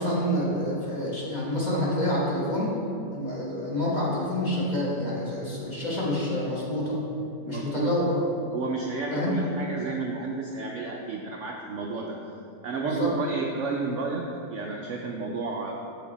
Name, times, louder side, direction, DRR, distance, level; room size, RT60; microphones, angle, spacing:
voice 1, 0.0-2.8 3.1-7.0 7.4-8.2 9.1-9.4 12.8-13.1, left 1 dB, 25° left, -6 dB, 1.2 m, -27 dB
voice 2, 7.4-7.9 8.5-12.2 12.6-14.2 14.5-15.7, right 4 dB, 80° right, 0 dB, 0.6 m, -31 dB
6.9 x 5.9 x 4.1 m, 2.5 s
omnidirectional pair, 1.9 m